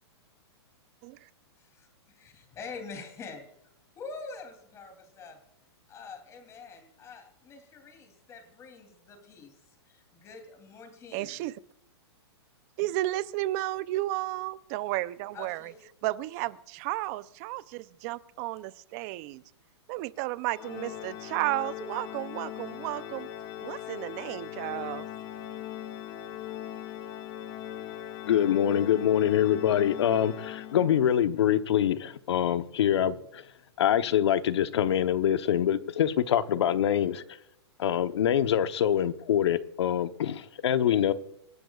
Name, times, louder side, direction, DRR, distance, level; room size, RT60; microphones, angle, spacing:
voice 1, 2.2-3.5 4.0-5.4 5.9-9.5 9.9-11.3 15.3-15.8, left 4 dB, 20° left, 3.1 m, -45 dB
voice 2, 11.1-11.5 12.8-15.7 16.0-19.4 19.9-23.3 23.6-25.1, right 17 dB, 35° right, 0.6 m, -33 dB
Organ, 20.5-31.3, left 11 dB, 40° left, 1.7 m, -40 dB
voice 3, 28.2-33.4 33.8-37.2 37.8-41.1, left 10 dB, 75° left, 1.0 m, -25 dB
26.5 x 12.0 x 2.4 m
hypercardioid pair, 150°, 14 cm